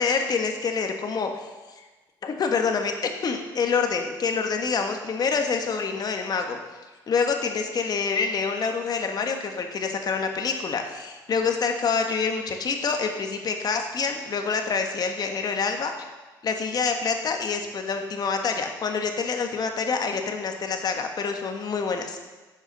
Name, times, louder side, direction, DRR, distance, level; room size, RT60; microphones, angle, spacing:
voice 1, 0.0-1.5 1.8-1.9 2.2-2.9 3.2-6.6 7.1-15.9 16.4-22.2, left 5 dB, 50° left, 4 dB, 1.6 m, -26 dB
11.5 x 7.1 x 5.5 m, 1.2 s
supercardioid pair, 75°, 9 cm